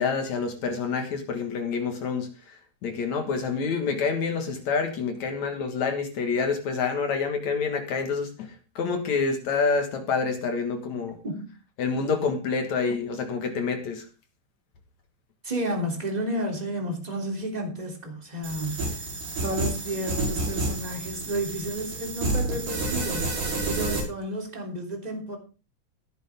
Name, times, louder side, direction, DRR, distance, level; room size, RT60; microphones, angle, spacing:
voice 1, 0.0-2.3 2.8-11.2 11.8-14.1, left 5 dB, 55° left, 2.3 m, -27 dB
voice 2, 15.4-18.8 19.4-23.3 23.6-25.4, right 1 dB, 10° right, 2.5 m, -31 dB
sound 1, 18.4-24.0, right 2 dB, 85° right, 7.4 m, -29 dB
16.5 x 10.5 x 3.6 m
omnidirectional pair, 4.9 m